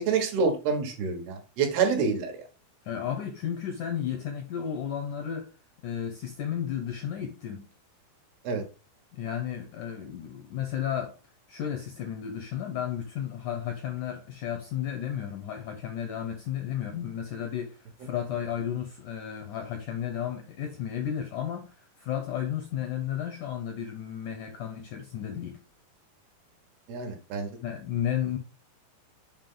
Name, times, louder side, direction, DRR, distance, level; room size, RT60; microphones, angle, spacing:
voice 1, 0.0-2.4 8.4-8.6 26.9-27.6, right 5 dB, 75° right, 3.2 m, -27 dB
voice 2, 2.9-5.5 5.8-7.6 9.1-11.2 11.5-25.6 27.6-28.4, left 9 dB, 80° left, 1.8 m, -33 dB
7.4 x 5.1 x 3.8 m
omnidirectional pair, 4.8 m